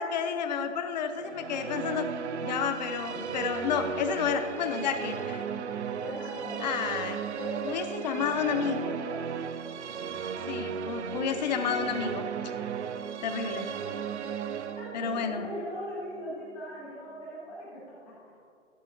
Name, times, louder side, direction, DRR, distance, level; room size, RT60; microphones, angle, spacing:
voice 1, 0.0-2.1 2.4-5.4 6.6-7.2 7.6-8.9 10.5-12.3 13.2-13.7 14.9-15.5, left 7 dB, 35° left, 7 dB, 0.6 m, -30 dB
Musical instrument, 1.2-16.6, right 7 dB, 65° right, 0.6 m, -36 dB
voice 2, 5.9-7.0 7.3-9.4 10.1-11.0 11.2-12.2 14.6-17.8, equal, 5° left, -11 dB, 0.3 m, -41 dB
11.5 x 8.2 x 2.5 m, 2.5 s
hypercardioid pair, 145°, 37 cm